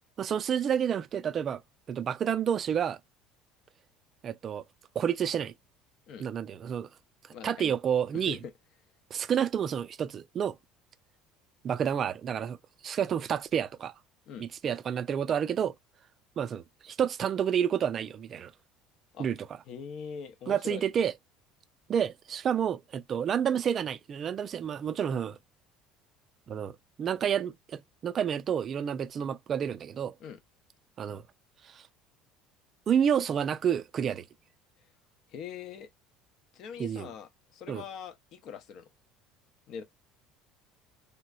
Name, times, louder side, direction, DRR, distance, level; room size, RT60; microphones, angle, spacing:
voice 1, 0.2-1.6 1.9-3.0 4.2-4.6 5.0-5.5 6.2-6.9 7.4-8.4 9.1-10.6 11.6-12.6 12.8-13.9 14.4-15.7 16.4-18.5 19.2-19.5 20.5-21.1 21.9-25.4 26.5-30.1 31.0-31.2 31.6-31.9 32.9-34.2 36.8-37.1 37.7-37.8, right 8 dB, 35° right, 0.4 m, -29 dB
voice 2, 7.3-7.7 8.2-8.4 14.3-14.5 19.1-19.3 19.7-20.8 30.2-30.4 35.3-35.9 36.5-38.9 39.7-39.8, left 7 dB, 50° left, 0.7 m, -42 dB
3.4 x 2.9 x 2.3 m
cardioid pair, 150°, 0 cm